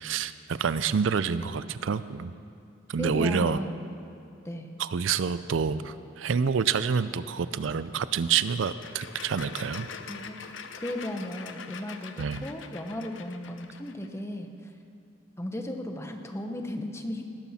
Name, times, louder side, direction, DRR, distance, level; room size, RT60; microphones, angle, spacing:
voice 1, 0.0-2.3 2.9-3.6 4.8-9.9 12.2-12.4, right 6 dB, 85° right, 14 dB, 0.4 m, -28 dB
voice 2, 3.0-3.8 4.4-4.7 10.1-10.4 10.8-14.7 15.4-17.2, left 1 dB, 15° left, 4 dB, 0.9 m, -35 dB
sound 1, 8.4-14.1, left 6 dB, 80° left, 0.7 m, -44 dB
19.0 x 12.0 x 4.2 m, 2.5 s
head